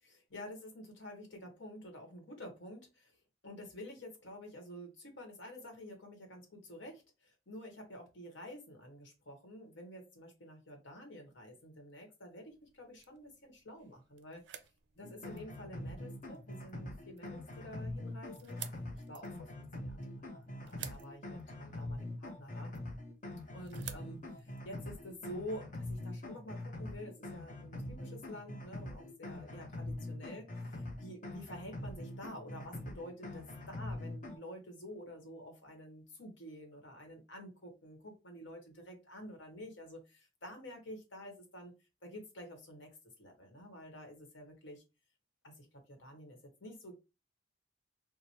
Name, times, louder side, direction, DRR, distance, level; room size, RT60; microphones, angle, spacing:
voice 1, 0.0-14.4 14.9-18.7 18.9-22.7 23.5-41.7 42.0-44.8 45.4-46.9, equal, 75° left, 3 dB, 1.2 m, -49 dB
sound 1, 12.4-25.3, right 11 dB, 65° right, 0.4 m, -54 dB
sound 2, 15.0-34.4, left 1 dB, 45° left, 0.8 m, -44 dB
3.0 x 2.1 x 4.0 m, 0.27 s
head